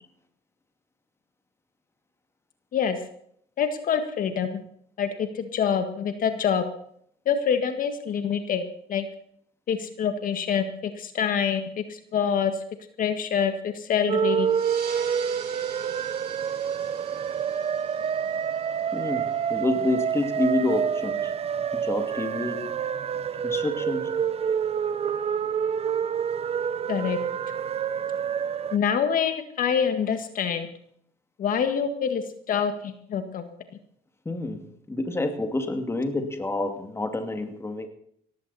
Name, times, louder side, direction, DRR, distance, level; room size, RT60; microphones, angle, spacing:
voice 1, 3.6-4.6 5.0-6.6 7.3-8.6 8.9-9.1 9.7-12.6 13.0-14.5 26.9-27.2 28.7-30.7 31.4-33.4, left 7 dB, 55° left, 8 dB, 1.8 m, -26 dB
sound 1, 14.1-28.8, right 8 dB, 35° right, 0.7 m, -27 dB
sound 2, 14.5-19.5, right 6 dB, 70° right, 5.4 m, -44 dB
voice 2, 18.9-19.2 19.5-21.3 21.7-22.6 23.4-24.1 34.2-34.6 34.9-37.9, left 2 dB, 15° left, 6 dB, 2.5 m, -28 dB
18.5 x 15.5 x 4.2 m, 0.67 s
cardioid pair, 110°, 17 cm